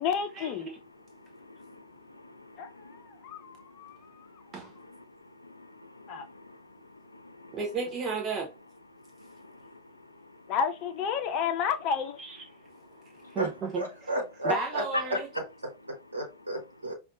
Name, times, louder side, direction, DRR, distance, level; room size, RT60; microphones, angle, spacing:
voice 1, 0.0-0.7 2.6-4.2 6.1-6.2 10.5-12.2, left 7 dB, 40° left, 0.7 m, -31 dB
voice 2, 1.3-1.8 2.1-3.0 5.4-6.6 7.1-7.6 9.2-9.8 13.2-13.4, left 2 dB, 85° left, 0.4 m, -51 dB
voice 3, 7.5-8.5 12.2-12.4 13.3-14.1 14.4-15.3, right 4 dB, 30° right, 0.7 m, -33 dB
voice 4, 13.8-14.8 16.1-16.9, right 1 dB, 75° right, 1.0 m, -32 dB
5.2 x 2.5 x 2.5 m
figure-of-eight pair, 90°, 0 cm